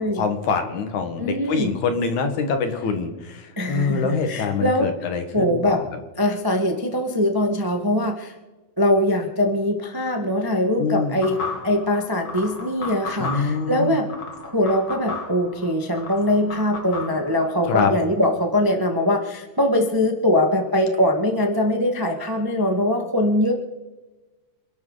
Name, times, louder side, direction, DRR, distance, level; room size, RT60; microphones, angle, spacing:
voice 1, 0.0-5.8 10.8-11.2 13.2-14.0 17.7-17.9, left 5 dB, 75° left, 6 dB, 3.1 m, -25 dB
voice 2, 1.2-1.7 3.6-4.9 5.3-5.8 6.2-8.3 8.8-11.4 11.6-14.1 14.5-23.5, left 1 dB, 15° right, 3 dB, 0.8 m, -22 dB
sound 1, 11.2-17.8, left 3 dB, 40° left, 3.1 m, -35 dB
27.5 x 12.0 x 4.0 m, 1.2 s
omnidirectional pair, 3.5 m